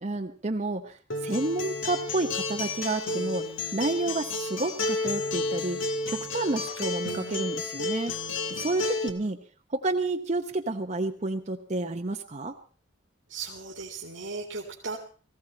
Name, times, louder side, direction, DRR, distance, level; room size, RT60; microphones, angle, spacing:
voice 1, 0.0-3.5 3.7-5.8 6.1-8.2 8.5-9.4 9.7-12.5, right 2 dB, 35° right, 5 dB, 0.8 m, -30 dB
Acoustic guitar, 1.1-9.1, left 2 dB, 85° left, 2.0 m, -31 dB
voice 2, 13.3-15.0, right 4 dB, 85° right, -2 dB, 2.2 m, -36 dB
18.5 x 15.5 x 4.3 m, 0.39 s
head